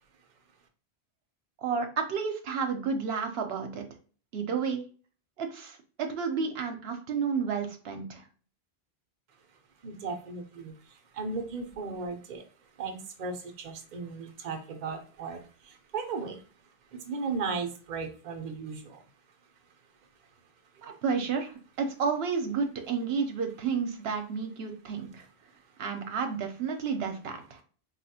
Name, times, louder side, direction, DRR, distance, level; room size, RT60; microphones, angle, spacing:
voice 1, 1.6-3.9 4.3-4.8 5.4-8.3 20.8-25.2 25.8-27.6, right 5 dB, 80° right, 5 dB, 0.8 m, -31 dB
voice 2, 9.8-16.4 16.9-19.0, right 4 dB, 50° right, 5 dB, 0.7 m, -36 dB
4.2 x 2.3 x 2.7 m, 0.40 s
omnidirectional pair, 1.0 m